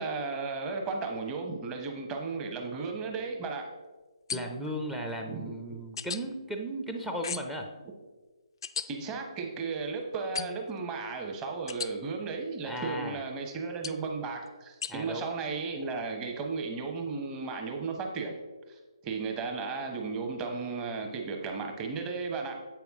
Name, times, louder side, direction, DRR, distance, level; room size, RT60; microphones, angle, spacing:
voice 1, 0.0-3.7 5.3-5.4 8.9-18.4 18.7-22.6, right 4 dB, 20° right, 2 dB, 1.0 m, -35 dB
sound 1, 4.3-4.7 6.0-6.2 7.2-7.6 8.6-8.9 10.3-10.7 11.7-11.9 13.8-14.1 14.8-14.9, left 7 dB, 55° left, 0.3 m, -36 dB
voice 2, 4.3-7.7 12.6-13.2 14.9-15.3, right 1 dB, 5° right, 3 dB, 0.5 m, -36 dB
8.0 x 5.9 x 3.6 m, 1.3 s
figure-of-eight pair, 140°, 3 cm